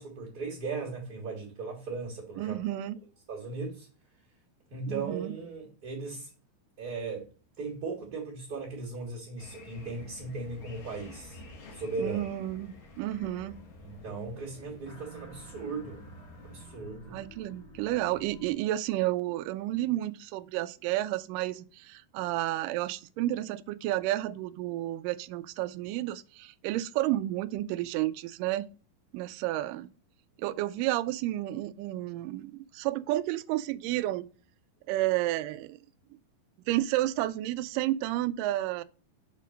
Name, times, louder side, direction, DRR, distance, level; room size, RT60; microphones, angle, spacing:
voice 1, 0.0-2.6 3.3-3.9 4.7-6.3 6.8-7.3 7.6-11.4 11.7-12.3 13.8-16.1 16.4-17.2, right 4 dB, 30° right, 2.3 m, -37 dB
voice 2, 2.4-3.0 4.9-5.4 12.0-13.6 17.1-28.7 29.1-29.9 30.4-34.3 34.9-35.8 36.7-38.8, right 15 dB, 85° right, 1.9 m, -31 dB
sound 1, 9.4-16.7, left 2 dB, 60° left, 1.5 m, -51 dB
sound 2, 13.0-18.5, right 1 dB, 30° left, 2.4 m, -51 dB
7.2 x 4.4 x 5.1 m
omnidirectional pair, 4.3 m